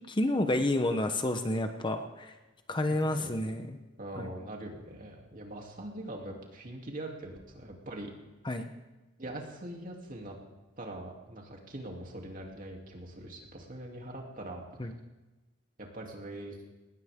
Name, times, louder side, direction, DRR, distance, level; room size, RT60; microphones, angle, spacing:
voice 1, 0.1-2.3 2.7-3.8 4.2-4.3 8.4-8.7 14.8-14.9, left 1 dB, 25° left, 7 dB, 0.9 m, -30 dB
voice 2, 4.0-8.1 9.2-10.4 10.8-14.7 15.8-16.6, right 1 dB, 45° right, 0 dB, 2.9 m, -42 dB
20.0 x 19.0 x 3.7 m, 1.1 s
head